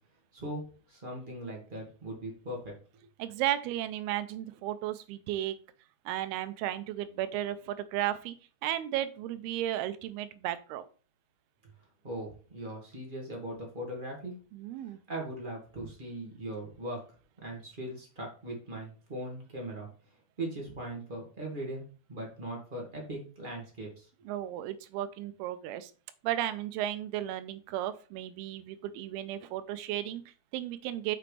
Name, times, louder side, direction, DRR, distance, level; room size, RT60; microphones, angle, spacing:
voice 1, 0.3-2.7 12.0-14.3 15.1-17.0 17.4-19.9 20.4-21.8 22.1-24.1, right 1 dB, 35° right, -1 dB, 0.7 m, -39 dB
voice 2, 3.2-5.6 6.1-8.4 8.6-10.8 14.5-15.0 24.3-25.9 26.2-31.2, right 13 dB, 85° right, 12 dB, 2.7 m, -34 dB
7.2 x 6.0 x 3.3 m, 0.37 s
omnidirectional pair, 4.4 m